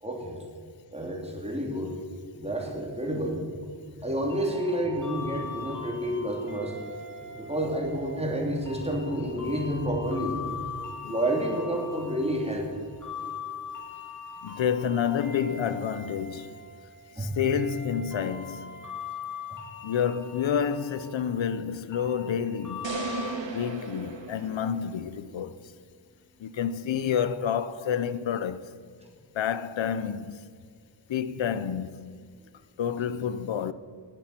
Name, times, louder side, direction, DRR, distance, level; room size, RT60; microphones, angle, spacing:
voice 1, 0.0-0.4 0.9-2.0 2.4-6.9 7.2-10.7 11.1-12.7 17.2-17.3, right 1 dB, 15° right, 3.3 m, -30 dB
sound 1, 4.3-23.3, left 5 dB, 40° left, 4.4 m, -41 dB
voice 2, 14.4-16.6 17.2-18.8 19.8-23.0 23.4-25.6 26.4-28.7 29.3-30.5 31.1-32.2 32.8-33.7, left 8 dB, 85° left, 0.7 m, -29 dB
sound 2, 22.8-25.1, right 3 dB, 75° right, 2.3 m, -35 dB
18.0 x 11.5 x 6.0 m
wide cardioid pair, 95°, 45 cm